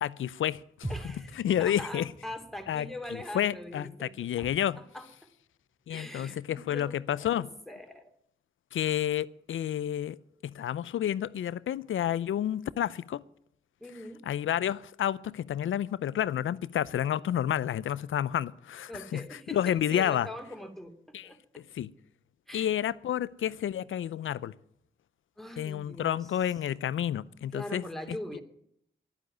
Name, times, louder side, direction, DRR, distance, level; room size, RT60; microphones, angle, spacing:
voice 1, 0.0-2.1 2.7-2.9 3.3-4.8 5.9-7.5 8.7-10.2 10.4-13.2 14.3-20.3 21.1-21.3 21.6-21.9 22.5-24.5 25.6-27.8 28.3-28.4, left 10 dB, 80° left, 0.5 m, -30 dB
sound 1, 0.8-4.8 5.1-5.2, right 1 dB, 35° right, 3.5 m, -44 dB
voice 2, 0.9-4.1 4.4-5.3 5.9-8.1 13.8-14.2 18.9-21.4 22.5-22.7 25.4-26.3 27.5-28.4, left 1 dB, ahead, 2.8 m, -42 dB
11.0 x 9.6 x 9.1 m
supercardioid pair, 40°, 20 cm